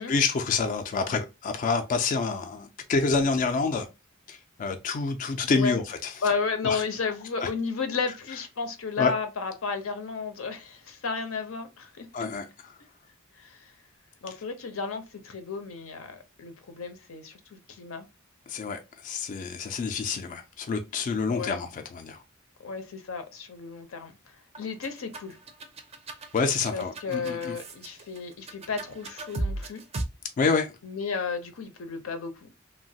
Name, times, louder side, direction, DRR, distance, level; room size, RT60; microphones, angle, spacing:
voice 1, 0.0-3.9 4.3-6.1 6.6-6.8 7.4-7.5 9.0-9.1 12.1-12.5 18.5-22.2 26.3-27.6 30.4-30.7, left 4 dB, 40° left, 0.3 m, -27 dB
voice 2, 6.2-12.3 13.4-13.7 14.2-18.1 21.3-21.6 22.6-24.2 24.6-25.4 26.7-29.8 30.8-32.5, left 5 dB, 85° left, 0.6 m, -33 dB
sound 1, 24.6-30.0, right 2 dB, 30° right, 0.4 m, -36 dB
3.0 x 2.2 x 2.6 m
head